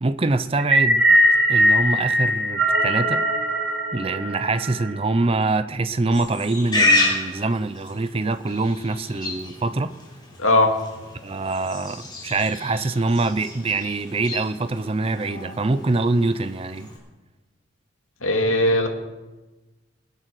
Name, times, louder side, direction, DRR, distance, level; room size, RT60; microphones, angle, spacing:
voice 1, 0.0-1.1 1.5-3.2 3.9-9.9 11.2-16.9, right 3 dB, 25° right, 12 dB, 0.5 m, -24 dB
sound 1, 0.6-4.9, equal, 50° right, 3.0 m, -20 dB
Livestock farm animals working animals, 6.1-17.0, left 2 dB, 20° left, 3.7 m, -29 dB
voice 2, 10.4-10.7 18.2-18.9, left 1 dB, 85° left, 4 dB, 2.2 m, -18 dB
20.5 x 9.0 x 6.2 m, 1.2 s
head